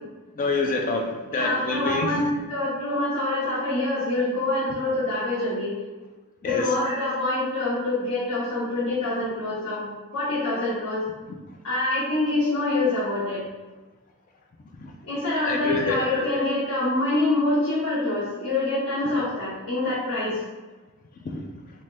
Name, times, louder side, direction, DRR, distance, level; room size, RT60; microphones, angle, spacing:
voice 1, 0.4-2.2 6.4-6.8 14.8-14.9 15.4-16.0 21.2-21.6, left 3 dB, 35° left, 2 dB, 0.3 m, -27 dB
voice 2, 1.3-5.7 6.4-9.9 10.1-11.0 11.6-13.4 15.0-20.4, left 2 dB, 70° left, -11 dB, 0.9 m, -25 dB
2.8 x 2.1 x 3.2 m, 1.2 s
head